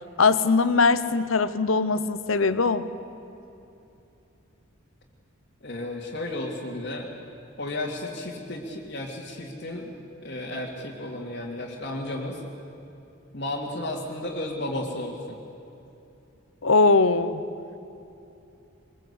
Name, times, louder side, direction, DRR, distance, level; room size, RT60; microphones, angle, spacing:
voice 1, 0.2-2.9 16.6-17.4, left 4 dB, 80° left, 13 dB, 1.0 m, -21 dB
voice 2, 5.6-7.1 7.6-9.9 10.2-12.4 13.3-15.4, left 1 dB, 55° left, -3 dB, 2.2 m, -33 dB
22.5 x 21.5 x 8.2 m, 2.8 s
head